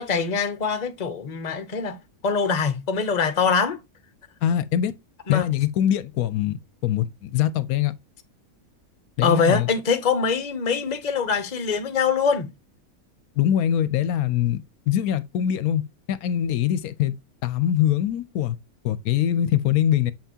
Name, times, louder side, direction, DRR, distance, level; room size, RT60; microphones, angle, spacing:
voice 1, 0.0-2.0 2.2-3.8 5.3-5.5 9.2-12.5, left 5 dB, 35° left, 0.9 m, -23 dB
voice 2, 4.4-5.0 5.3-7.9 9.2-9.7 13.4-15.8 16.1-17.1 17.4-18.6 18.8-20.1, left 10 dB, 80° left, 1.0 m, -23 dB
7.1 x 5.7 x 2.7 m
omnidirectional pair, 1.5 m